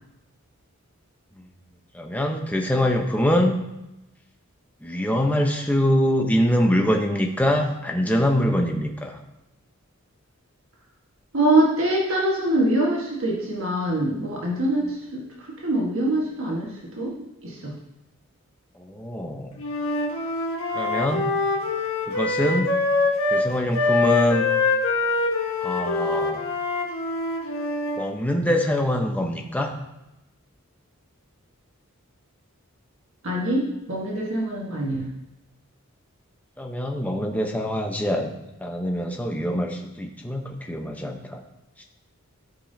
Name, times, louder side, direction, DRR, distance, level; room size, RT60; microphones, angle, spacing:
voice 1, 1.9-3.6 4.8-9.2 18.7-19.5 20.7-21.3 22.1-22.7 23.3-24.4 25.6-26.4 28.0-29.7 36.6-38.3 38.6-41.4 41.8-41.9, equal, 5° left, 2 dB, 0.9 m, -24 dB
voice 2, 11.3-15.2 15.6-16.7 17.0-17.1 17.4-17.7 33.2-35.1, right 1 dB, 65° right, -3 dB, 1.6 m, -23 dB
Wind instrument woodwind instrument, 19.6-23.5 23.7-28.0, left 3 dB, 75° left, 1.5 m, -24 dB
13.5 x 5.4 x 2.8 m, 0.91 s
head